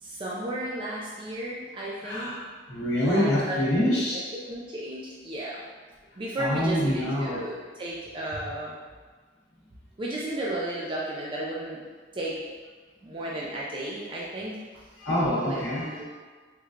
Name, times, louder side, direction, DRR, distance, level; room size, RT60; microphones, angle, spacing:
voice 1, 0.0-2.3 3.1-4.0 4.5-5.6 6.2-8.7 10.0-11.8 12.1-12.4 13.0-14.6 15.4-16.0, right 1 dB, 25° right, -5 dB, 0.3 m, -33 dB
voice 2, 2.0-2.4 2.7-4.2 6.4-7.4 15.0-16.0, left 1 dB, 80° left, -9 dB, 0.8 m, -26 dB
3.2 x 3.1 x 2.4 m, 1.4 s
head